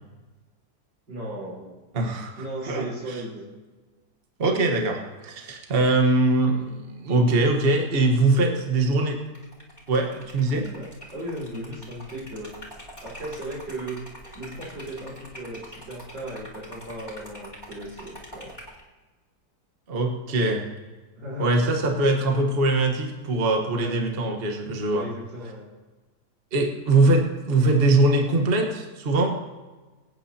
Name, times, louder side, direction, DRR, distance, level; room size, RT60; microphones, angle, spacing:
voice 1, 1.1-1.8 2.4-3.4 8.3-8.6 10.7-12.6 13.0-14.0 14.3-18.6 21.1-21.8 23.7-24.2 24.9-25.7, right 1 dB, 90° right, -5 dB, 4.9 m, -36 dB
voice 2, 1.9-2.3 2.6-3.2 4.4-9.2 9.9-10.7 19.9-20.6 21.4-25.1 26.5-29.3, right 2 dB, 35° right, 2 dB, 1.4 m, -22 dB
Liquid, 9.3-18.8, equal, 10° left, 2.9 m, -44 dB
23.5 x 9.1 x 2.9 m, 1.2 s
omnidirectional pair, 2.0 m